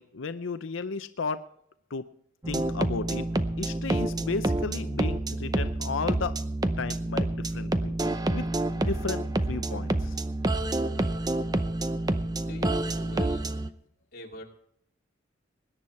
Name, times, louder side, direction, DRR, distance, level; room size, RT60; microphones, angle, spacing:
voice 1, 0.0-1.5 1.9-2.1 2.5-3.3 3.6-6.4 6.8-8.5 8.7-10.2, left 4 dB, 75° left, 11 dB, 0.6 m, -34 dB
sound 1, 2.4-13.7, right 1 dB, 20° right, 0.7 m, -28 dB
voice 2, 12.3-13.5 14.1-14.4, left 1 dB, 50° left, -1 dB, 2.8 m, -43 dB
20.5 x 9.9 x 4.3 m, 0.72 s
head